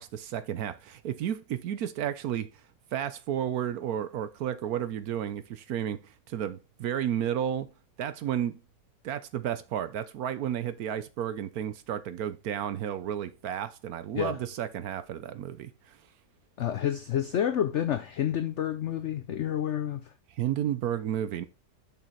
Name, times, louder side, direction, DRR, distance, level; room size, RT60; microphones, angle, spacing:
voice 1, 0.0-2.5 2.9-7.7 8.0-8.6 9.0-16.0 20.4-21.4, right 10 dB, 65° right, 1.0 m, -32 dB
voice 2, 16.6-20.1, left 10 dB, 80° left, 0.6 m, -29 dB
6.9 x 5.8 x 4.1 m
omnidirectional pair, 1.9 m